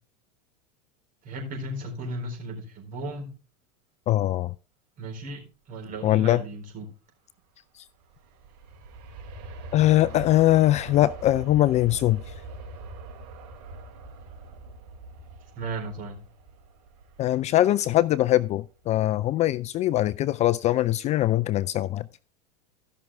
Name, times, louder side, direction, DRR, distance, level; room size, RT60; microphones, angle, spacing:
voice 1, 1.2-3.3 5.0-6.9 15.5-16.2, right 1 dB, 40° right, 4.1 m, -35 dB
voice 2, 4.1-4.5 6.0-6.4 9.7-12.2 17.2-22.1, left 14 dB, 35° left, 0.4 m, -22 dB
Aircraft, 7.9-18.7 19.2-19.3, right 2 dB, 55° right, 4.1 m, -43 dB
15.5 x 6.1 x 3.3 m
hypercardioid pair, 110°, 21 cm